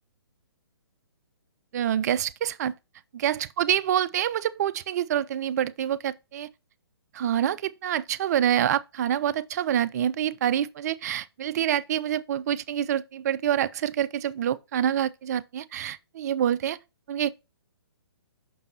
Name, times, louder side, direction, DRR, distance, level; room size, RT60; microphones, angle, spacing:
voice 1, 1.7-2.7 3.1-6.5 7.1-16.8 17.1-17.3, right 10 dB, 40° right, 0.5 m, -26 dB
6.1 x 5.3 x 4.6 m
figure-of-eight pair, 135°, 13 cm